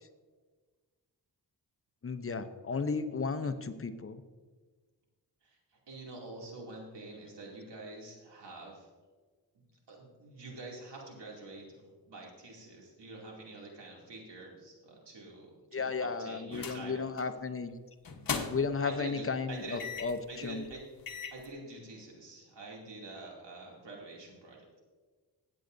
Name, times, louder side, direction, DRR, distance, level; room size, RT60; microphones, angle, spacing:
voice 1, 2.0-4.2 15.7-17.7 18.5-20.2 20.4-20.6, left 4 dB, 35° left, 9 dB, 0.7 m, -34 dB
voice 2, 5.4-8.9 9.5-17.1 18.8-19.8 20.3-20.8 21.3-24.6, right 2 dB, 90° right, -2 dB, 2.6 m, -46 dB
sound 1, 16.5-16.9 17.2-17.4 18.0-18.8 19.8-20.2 20.7-20.8 21.1-21.5, left 5 dB, 55° left, 1.1 m, -37 dB
16.0 x 8.6 x 2.6 m, 1.4 s
wide cardioid pair, 90°, 41 cm